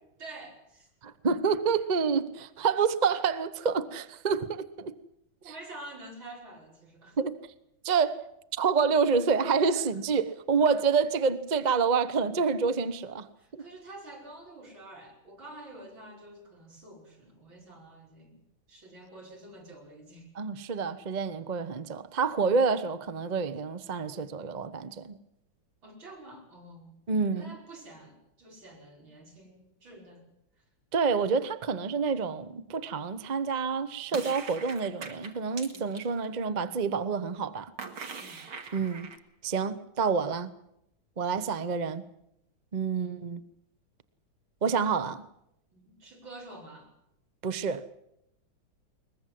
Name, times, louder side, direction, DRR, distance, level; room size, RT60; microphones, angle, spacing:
voice 1, 0.2-0.9 5.4-7.2 9.7-10.0 13.4-18.4 18.7-20.3 25.8-27.0 27.3-30.3 35.7-35.9 38.1-38.5 41.2-41.4 42.9-43.2 45.7-46.9, right 2 dB, 70° right, 6.2 m, -48 dB
voice 2, 1.0-5.0 7.2-7.4 7.8-8.2 8.5-13.3 13.5-13.6 20.4-25.1 27.1-27.6 30.9-37.7 38.7-39.1 39.4-40.5 41.2-42.0 42.7-43.4 44.6-45.2 47.4-47.9, right 5 dB, 35° right, 0.6 m, -28 dB
sound 1, 34.1-36.1 37.8-39.2, right 5 dB, 90° right, 3.0 m, -41 dB
22.0 x 21.0 x 7.7 m
omnidirectional pair, 2.2 m